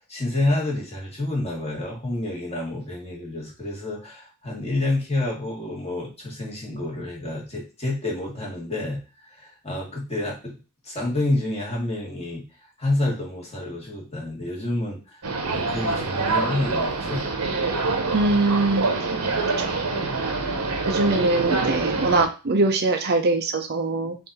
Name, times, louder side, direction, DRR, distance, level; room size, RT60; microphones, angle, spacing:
voice 1, 0.1-10.5 10.8-12.4 12.8-17.3, left 2 dB, 30° left, -3 dB, 1.6 m, -28 dB
sound 1, 15.2-22.2, right 3 dB, 85° right, 0.9 m, -25 dB
voice 2, 18.1-19.1 19.6-19.8 20.9-24.2, right 3 dB, 45° right, 6 dB, 0.5 m, -22 dB
3.7 x 2.6 x 4.0 m, 0.32 s
head